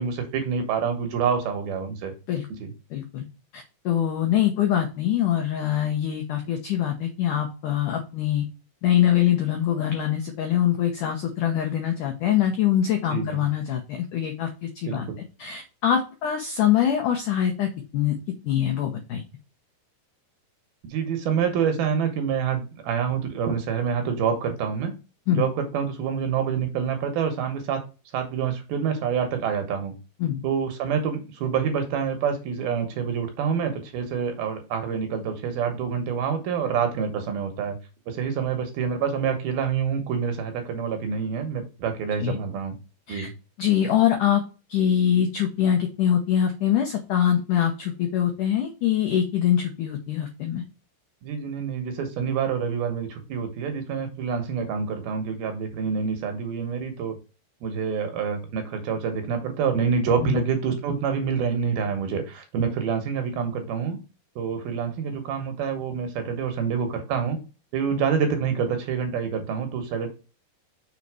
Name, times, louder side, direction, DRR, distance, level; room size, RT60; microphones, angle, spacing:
voice 1, 0.0-2.1 2.5-2.7 13.1-13.4 14.9-15.2 20.8-24.9 25.3-27.8 28.1-29.9 30.4-37.8 38.1-42.7 43.1-43.3 51.2-57.2 57.6-64.0 64.4-67.4 67.7-70.1, right 6 dB, 70° right, 6 dB, 2.6 m, -27 dB
voice 2, 2.9-3.3 3.5-8.5 8.8-15.1 15.4-18.2 18.4-19.2 25.3-25.5 30.2-30.4 42.2-42.4 43.1-43.3 43.6-44.4 44.7-50.6 60.2-60.4, left 10 dB, 80° left, 4 dB, 1.8 m, -24 dB
6.6 x 4.1 x 4.8 m, 0.32 s
omnidirectional pair, 5.2 m